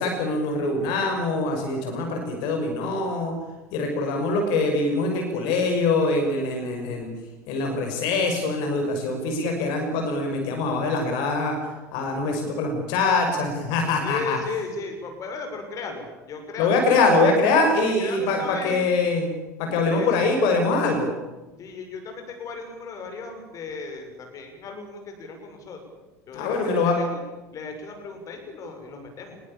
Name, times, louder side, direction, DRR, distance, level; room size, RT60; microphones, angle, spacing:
voice 1, 0.0-3.3 3.7-7.1 7.5-11.6 11.9-14.4 16.6-19.3 19.6-21.1 26.3-26.9, left 3 dB, 50° left, 3 dB, 6.0 m, -23 dB
voice 2, 14.0-17.1 17.8-19.0 19.9-20.1 21.6-25.8 26.3-27.2 27.5-29.5, left 4 dB, 35° left, 4 dB, 6.3 m, -36 dB
24.0 x 21.5 x 8.7 m, 1.1 s
figure-of-eight pair, 75°, 9 cm